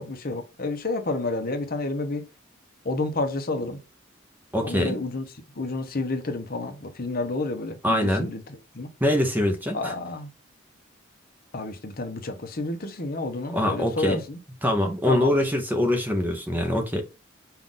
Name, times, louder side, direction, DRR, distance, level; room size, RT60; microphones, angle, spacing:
voice 1, 0.0-2.3 2.8-3.8 4.6-5.2 5.6-8.4 8.7-8.9 9.7-10.3 11.5-14.4 15.1-15.4, left 2 dB, 45° left, 0.8 m, -30 dB
voice 2, 4.5-5.0 7.8-8.3 9.0-9.9 13.5-14.2 14.6-17.0, left 1 dB, 10° right, 0.6 m, -23 dB
5.7 x 2.5 x 3.7 m
head